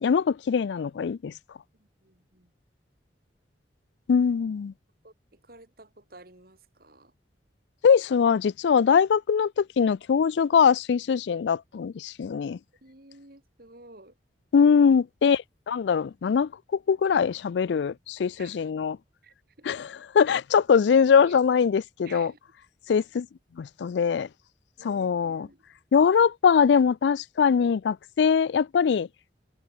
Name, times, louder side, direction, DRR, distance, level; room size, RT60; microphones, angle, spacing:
voice 1, 0.0-1.3 4.1-4.7 7.8-12.6 14.5-19.0 19.7-22.3 22.9-23.3 23.6-24.3 24.8-25.5 25.9-29.1, left 6 dB, 75° left, 0.4 m, -22 dB
voice 2, 1.8-2.5 5.0-7.1 12.8-14.2 18.4-18.6 19.2-19.8 21.2-21.4 22.0-22.4 24.8-25.6, right 2 dB, 55° right, 3.9 m, -52 dB
head